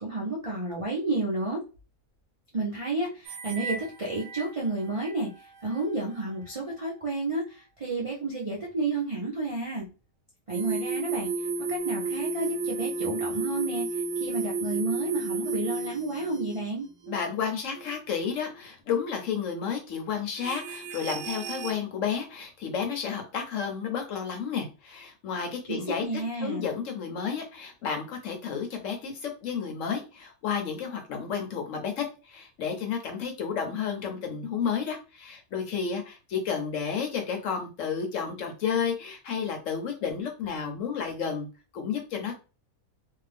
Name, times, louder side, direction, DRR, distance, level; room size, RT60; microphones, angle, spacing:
voice 1, 0.0-1.6 2.5-5.3 5.6-9.9 10.5-11.3 11.7-16.9 25.7-26.7, right 2 dB, 45° right, -5 dB, 0.4 m, -31 dB
sound 1, 3.3-3.9 4.2-4.4 5.0-5.1 10.5-16.6 17.0-17.3 17.8-17.9 18.5-18.6 20.4-21.7, right 3 dB, 75° right, 1.0 m, -32 dB
voice 2, 17.1-26.1 26.4-41.5 41.7-42.4, left 6 dB, 65° left, 4 dB, 0.9 m, -31 dB
2.6 x 2.2 x 3.3 m, 0.32 s
omnidirectional pair, 1.6 m